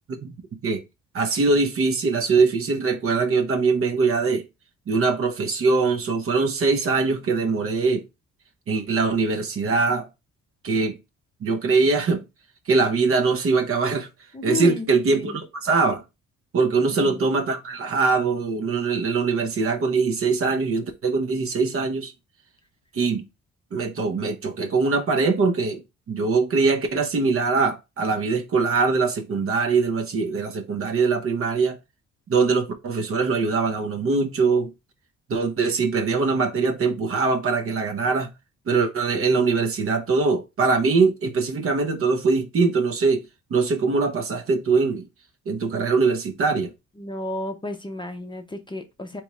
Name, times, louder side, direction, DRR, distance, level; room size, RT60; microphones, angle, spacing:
voice 1, 1.1-4.4 4.9-8.0 8.7-10.1 10.6-11.0 11.4-12.2 12.7-14.1 14.4-16.0 16.5-22.1 22.9-23.3 23.7-25.8 26.1-31.8 32.3-34.7 35.3-38.3 38.7-43.2 43.5-45.1 45.5-46.7, right 4 dB, 45° right, 0.8 m, -22 dB
voice 2, 14.3-15.4 16.9-17.3 47.0-49.2, left 2 dB, 15° left, 0.6 m, -32 dB
3.5 x 3.0 x 3.0 m
cardioid pair, 90°, 30 cm